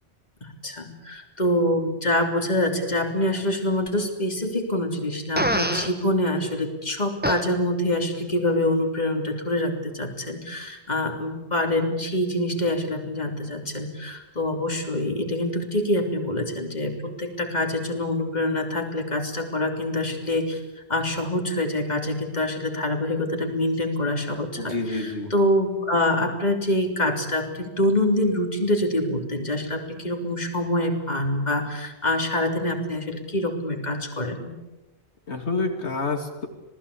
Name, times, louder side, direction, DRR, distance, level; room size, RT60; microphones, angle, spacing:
voice 1, 0.4-20.6 20.9-24.7 25.3-34.5, left 1 dB, 40° left, 3 dB, 3.5 m, -25 dB
Fart, 5.4-5.9 7.2-7.4, equal, 10° right, 1.7 m, -24 dB
voice 2, 24.6-25.3 35.3-36.5, left 3 dB, 85° left, 4 dB, 2.8 m, -28 dB
27.5 x 19.0 x 8.5 m, 1.0 s
omnidirectional pair, 1.1 m